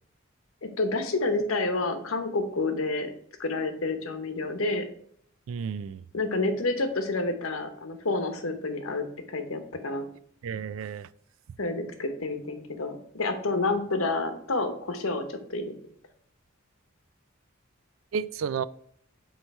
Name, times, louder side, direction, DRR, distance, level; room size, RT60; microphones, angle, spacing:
voice 1, 0.6-3.1 3.4-4.8 6.1-10.0 11.6-15.7, left 2 dB, 80° left, 7 dB, 0.9 m, -29 dB
voice 2, 5.5-6.0 10.4-11.1 18.1-18.7, right 6 dB, 70° right, 17 dB, 0.3 m, -32 dB
7.9 x 3.1 x 4.2 m, 0.63 s
head